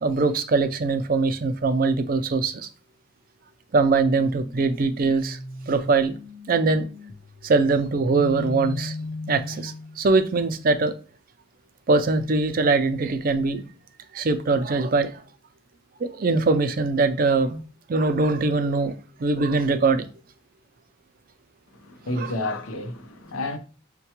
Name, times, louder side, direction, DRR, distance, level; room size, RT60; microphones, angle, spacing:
voice 1, 0.0-2.7 3.7-5.4 5.7-6.1 6.5-6.9 7.4-9.0 9.3-10.9 11.9-13.6 14.1-15.2 16.0-17.6 17.9-18.9 19.2-20.1 22.1-22.3, right 3 dB, 45° right, 0.4 m, -22 dB
sound 1, 4.1-10.0, left 2 dB, 25° left, 0.4 m, -37 dB
voice 2, 21.7-23.6, left 2 dB, 90° left, 0.6 m, -30 dB
5.5 x 2.2 x 2.8 m
head